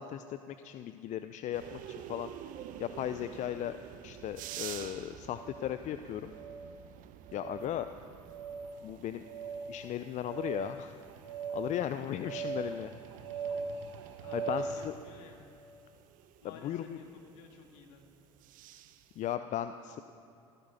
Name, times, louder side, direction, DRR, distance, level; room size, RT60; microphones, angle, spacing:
voice 1, 0.0-2.3 2.8-3.8 4.0-6.3 7.3-7.9 8.8-9.3 9.7-10.9 11.5-12.9 14.3-14.9 16.6-17.0 19.2-20.0, left 11 dB, 45° left, 10 dB, 0.6 m, -36 dB
sound 1, 1.5-19.3, right 10 dB, 55° right, 1.0 m, -50 dB
sound 2, 3.4-3.6 4.3-4.7 5.3-5.7 6.3-6.7 7.3-7.7 8.3-14.9, right 5 dB, 70° right, 1.8 m, -40 dB
voice 2, 7.3-7.7 12.7-12.8 13.3-13.5 14.2-15.5 16.4-18.0, left 4 dB, 70° left, 3 dB, 2.5 m, -54 dB
15.5 x 13.5 x 6.9 m, 2.7 s
hypercardioid pair, 65°, 17 cm